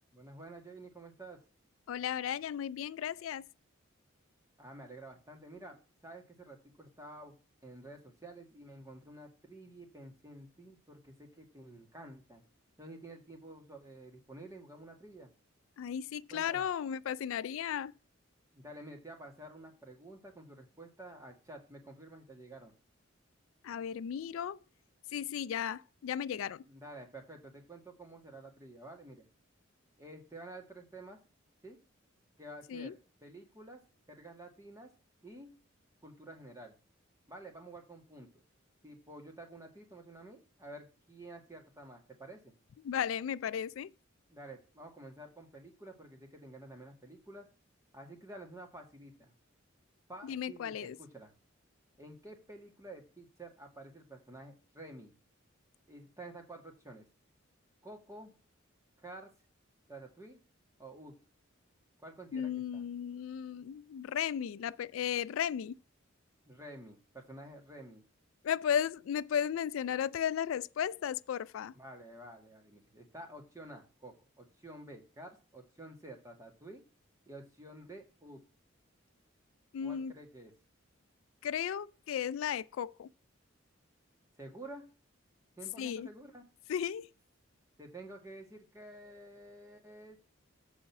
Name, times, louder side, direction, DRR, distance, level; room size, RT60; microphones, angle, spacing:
voice 1, 0.1-1.4 4.6-7.4 7.6-12.4 12.8-15.3 16.3-16.7 18.5-22.7 26.7-29.3 30.0-31.2 31.6-31.8 32.4-33.8 34.1-34.9 35.2-35.5 36.0-36.8 37.3-38.4 38.8-42.5 44.3-47.5 47.9-49.3 50.1-51.3 52.0-55.2 55.9-57.0 57.8-58.3 59.0-59.3 59.9-60.4 60.8-61.2 62.0-62.8 66.5-68.0 71.7-76.8 77.3-78.4 79.8-80.5 84.4-84.9 85.6-86.4 87.8-90.2, right 1 dB, 15° right, 1.9 m, -50 dB
voice 2, 1.9-3.5 15.8-17.9 23.6-24.6 25.1-26.6 32.7-32.9 42.8-43.9 50.2-51.0 62.3-65.7 68.4-71.7 79.7-80.1 81.4-83.1 85.8-86.1 86.7-87.1, left 8 dB, 80° left, 0.3 m, -35 dB
8.0 x 5.0 x 5.9 m
head